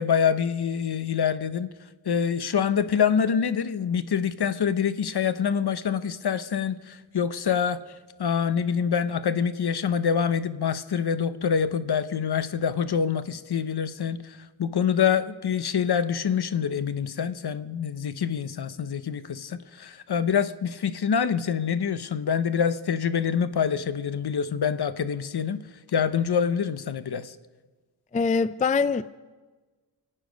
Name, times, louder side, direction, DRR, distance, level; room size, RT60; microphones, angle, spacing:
voice 1, 0.0-1.7 2.0-7.8 8.2-25.6 25.9-27.4, left 7 dB, 60° left, 13 dB, 0.8 m, -26 dB
voice 2, 28.1-29.0, left 4 dB, 20° left, 15 dB, 0.4 m, -23 dB
25.0 x 8.9 x 5.1 m, 1.3 s
cardioid pair, 70°, 45 cm